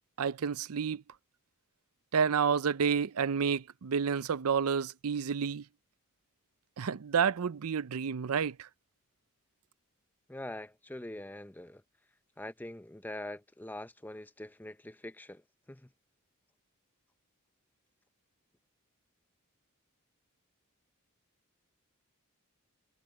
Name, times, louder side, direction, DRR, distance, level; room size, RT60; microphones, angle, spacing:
voice 1, 0.2-1.0 2.1-5.6 6.8-8.7, right 6 dB, 75° right, 0.5 m, -30 dB
voice 2, 10.3-11.8 12.4-15.4 15.7-15.9, left 1 dB, 10° left, 0.6 m, -43 dB
head